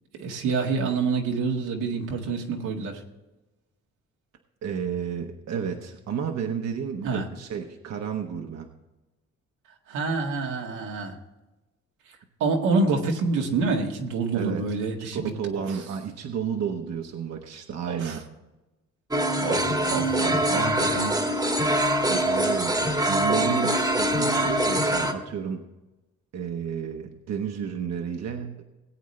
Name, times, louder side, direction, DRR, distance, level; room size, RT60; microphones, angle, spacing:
voice 1, 0.2-3.0 7.0-7.3 9.9-11.1 12.4-15.8 17.9-18.2 19.4-21.2 22.0-22.1, right 4 dB, 90° right, 0 dB, 1.9 m, -27 dB
voice 2, 4.6-8.7 14.3-14.6 15.0-18.2 22.1-25.7 26.3-28.6, right 7 dB, 60° right, 4 dB, 1.1 m, -32 dB
sound 1, 19.1-25.1, right 1 dB, 10° right, 1.4 m, -24 dB
18.5 x 8.4 x 3.3 m, 1.0 s
cardioid pair, 90°, 30 cm